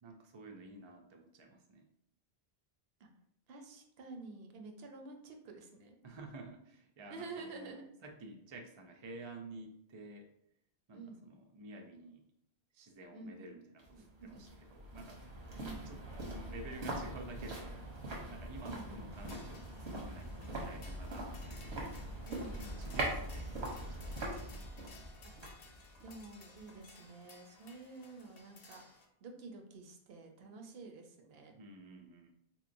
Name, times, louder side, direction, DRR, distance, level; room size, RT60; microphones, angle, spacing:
voice 1, 0.0-1.9 6.0-7.7 8.0-10.3 10.9-12.3 12.7-15.2 15.8-18.0 18.3-21.8 22.5-24.7 31.5-32.3, right 2 dB, 50° right, 3 dB, 0.3 m, -51 dB
voice 2, 3.5-5.9 7.1-7.8 10.9-11.2 13.1-13.4 13.9-14.4 15.5-15.9 18.6-19.1 22.2-22.6 25.2-25.4 26.0-28.8 29.2-31.5, right 3 dB, 70° right, 4 dB, 0.8 m, -49 dB
sound 1, 13.8-26.9 27.2-27.3, right 1 dB, 90° right, 1.2 m, -42 dB
sound 2, 19.1-29.0, left 4 dB, 65° left, 0.8 m, -59 dB
3.6 x 2.9 x 2.5 m, 0.73 s
omnidirectional pair, 1.1 m